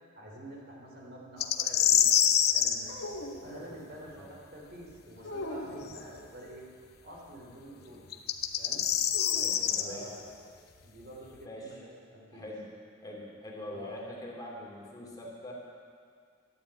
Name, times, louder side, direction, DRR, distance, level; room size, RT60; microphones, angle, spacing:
voice 1, 0.1-3.0 3.4-6.6 7.0-8.0 8.6-8.9 9.7-10.2 10.8-12.5 13.7-14.0, equal, 55° right, -2 dB, 3.4 m, -48 dB
sound 1, 1.4-2.8 5.9-6.0 8.1-9.8, left 10 dB, 55° left, 0.8 m, -25 dB
sound 2, 2.8-3.9 5.2-6.1 9.1-10.2, left 1 dB, 90° left, 1.6 m, -41 dB
voice 2, 9.3-10.1 10.7-10.8 11.4-11.8 12.3-12.7 13.0-15.5, left 1 dB, 20° left, -3 dB, 2.6 m, -44 dB
12.0 x 10.5 x 8.3 m, 2.1 s
head